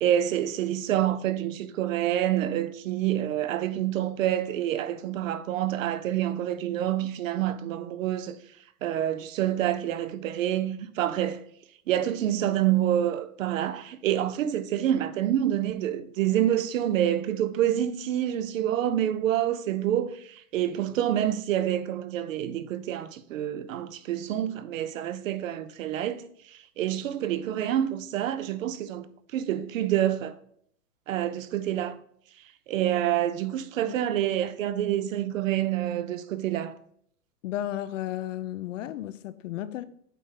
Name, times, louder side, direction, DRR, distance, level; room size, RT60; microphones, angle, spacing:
voice 1, 0.0-8.4 8.8-11.4 11.9-30.4 31.1-32.0 32.7-36.7, right 11 dB, 60° right, 0.7 m, -27 dB
voice 2, 37.4-39.8, left 12 dB, 55° left, 0.6 m, -33 dB
8.3 x 4.2 x 3.8 m
hypercardioid pair, 155°, 46 cm